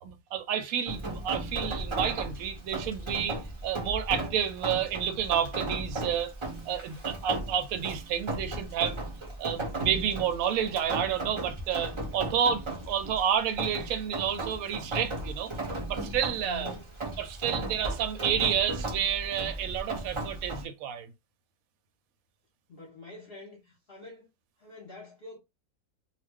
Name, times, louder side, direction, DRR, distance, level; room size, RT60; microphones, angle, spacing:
voice 1, 0.0-6.3 6.6-9.1 9.4-15.5 15.9-16.7 17.2-21.1, right 8 dB, 70° right, 1.0 m, -30 dB
Rain, 0.9-20.6, right 2 dB, 40° right, 0.4 m, -36 dB
voice 2, 16.4-17.0 22.7-24.3 24.6-25.4, left 3 dB, 50° left, 0.9 m, -46 dB
2.5 x 2.2 x 3.4 m
omnidirectional pair, 1.6 m